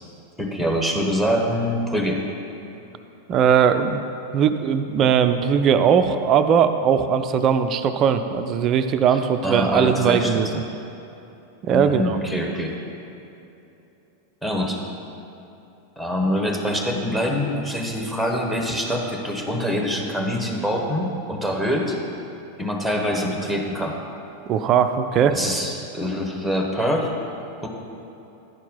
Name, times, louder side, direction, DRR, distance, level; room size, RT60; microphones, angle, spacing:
voice 1, 0.4-2.2 9.1-9.2 9.4-10.6 11.7-12.7 14.4-14.8 16.0-22.0 22.6-24.0 25.3-27.1 27.6-27.7, equal, 5° left, 1 dB, 1.1 m, -24 dB
voice 2, 3.3-4.0 4.3-10.5 11.6-12.2 24.5-25.4, right 7 dB, 35° right, 9 dB, 0.4 m, -19 dB
10.5 x 4.5 x 5.5 m, 2.9 s
figure-of-eight pair, 90°, 0 cm